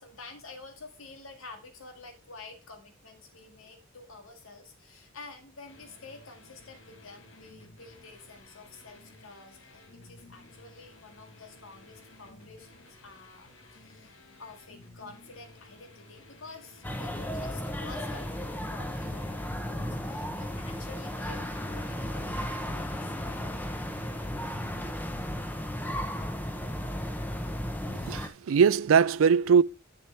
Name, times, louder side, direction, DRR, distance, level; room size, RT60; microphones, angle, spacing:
voice 1, 0.0-23.2, left 3 dB, 90° left, 1.9 m, -49 dB
sound 1, 5.7-24.9, left 2 dB, 70° left, 1.3 m, -55 dB
sound 2, 16.8-28.3, equal, 10° left, 0.8 m, -34 dB
voice 2, 27.9-29.6, right 6 dB, 80° right, 0.4 m, -21 dB
7.4 x 7.3 x 3.3 m
head